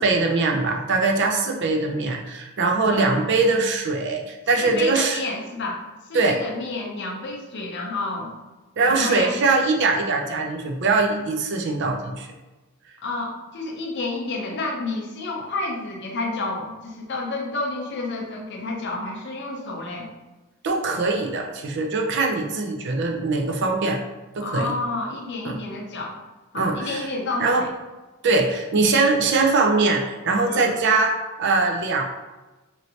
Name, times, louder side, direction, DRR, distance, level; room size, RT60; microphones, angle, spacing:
voice 1, 0.0-5.2 6.1-6.4 8.8-12.3 20.6-24.0 24.3-24.7 25.4-25.6 26.5-27.0 27.4-27.6 28.2-31.1 31.4-32.0, right 3 dB, 55° right, 2 dB, 0.4 m, -22 dB
voice 2, 2.9-3.2 4.6-8.3 8.9-9.3 13.0-20.1 24.4-26.1 26.5-27.7 30.5-30.7, left 2 dB, 55° left, 0 dB, 0.6 m, -30 dB
3.1 x 2.7 x 2.7 m, 1.1 s
head